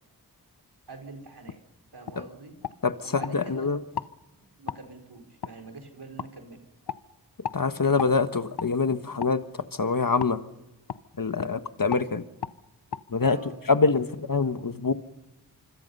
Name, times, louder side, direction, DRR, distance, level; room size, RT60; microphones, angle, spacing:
voice 1, 0.9-1.6 1.9-2.5 3.0-3.7 4.4-6.6 13.2-13.6, right 3 dB, 85° right, 3 dB, 4.7 m, -45 dB
sound 1, 1.5-1.6 2.1-2.2 2.6-3.4 3.9-4.1 4.7-4.8 5.4-5.5 6.2-6.3 6.9-7.0 7.4-7.6 8.0-8.1 8.6-8.7 9.2-9.4 10.2-10.4 10.9-11.0 11.3-11.5 11.9-12.1 12.4-12.6 12.9-13.0, left 7 dB, 90° left, 0.8 m, -34 dB
voice 2, 3.3-3.8 7.5-9.4 9.7-10.4 11.2-12.3 13.1-13.4 13.7-14.9, left 4 dB, 60° left, 10 dB, 1.5 m, -25 dB
26.0 x 25.5 x 5.6 m, 0.95 s
wide cardioid pair, 60°, 39 cm